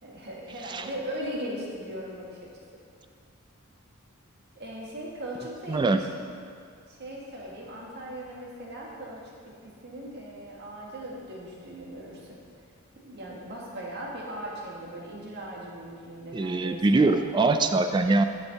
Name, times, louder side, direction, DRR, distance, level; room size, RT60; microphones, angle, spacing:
voice 1, 0.0-2.5 4.5-6.1 6.9-12.4 13.0-17.1, right 1 dB, 50° right, -3 dB, 1.7 m, -39 dB
voice 2, 5.7-6.0 16.3-18.2, right 3 dB, 20° right, 8 dB, 0.3 m, -23 dB
11.5 x 6.2 x 4.0 m, 2.3 s
head